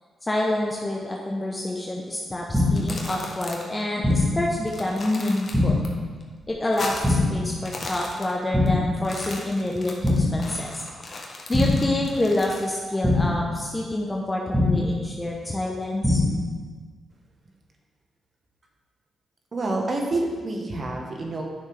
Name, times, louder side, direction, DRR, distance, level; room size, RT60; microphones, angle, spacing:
voice 1, 0.2-5.8 6.5-10.8 11.5-16.2, left 1 dB, 25° left, -1 dB, 1.0 m, -27 dB
sound 1, 2.5-3.0 4.0-4.5 5.5-6.0 7.0-7.5 8.5-9.0 10.0-10.5 11.5-12.0 13.0-13.5 14.5-15.0 16.0-16.5, left 2 dB, 5° right, 2.0 m, -22 dB
sound 2, 2.6-3.8 4.1-4.2 4.5-5.9 6.2-7.3 7.5-8.7 9.0-12.7, left 2 dB, 50° left, 1.4 m, -37 dB
voice 2, 19.5-21.4, right 2 dB, 50° right, 1 dB, 1.5 m, -27 dB
9.2 x 6.5 x 3.6 m, 1.5 s
supercardioid pair, 50°, 0 cm